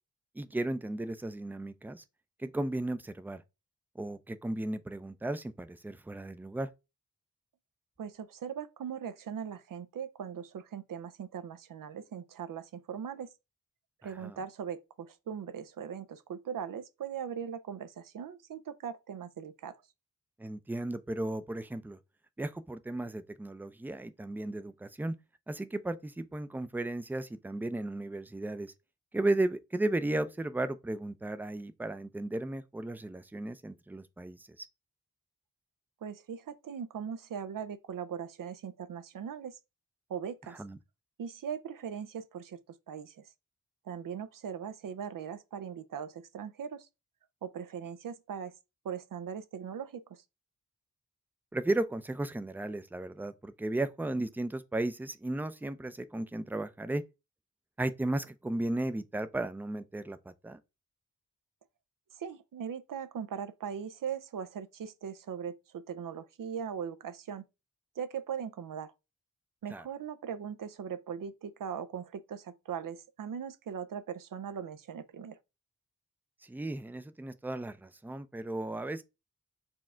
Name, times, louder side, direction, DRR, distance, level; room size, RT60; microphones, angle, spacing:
voice 1, 0.4-2.0 2.4-3.4 4.0-6.7 14.0-14.4 20.4-22.0 22.4-25.1 25.5-28.7 29.1-34.7 40.5-40.8 51.5-57.0 57.8-60.6 69.7-69.8 76.4-79.0, right 2 dB, 5° right, 0.4 m, -35 dB
voice 2, 8.0-13.3 14.0-19.8 36.0-39.6 40.1-40.6 41.2-43.2 43.9-46.9 47.4-48.5 48.8-50.2 62.2-67.4 68.0-68.9 69.6-75.4, right 7 dB, 75° right, 0.5 m, -40 dB
4.3 x 2.4 x 4.3 m
cardioid pair, 60°, 33 cm